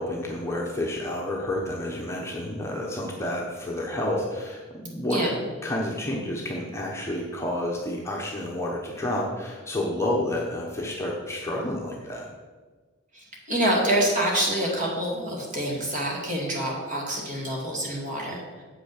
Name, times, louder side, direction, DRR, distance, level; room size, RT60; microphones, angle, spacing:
voice 1, 0.0-5.2 5.6-12.3, left 1 dB, 15° left, -2 dB, 1.1 m, -30 dB
voice 2, 13.1-18.6, right 1 dB, 35° right, -2 dB, 2.3 m, -26 dB
7.9 x 6.0 x 6.6 m, 1.4 s
head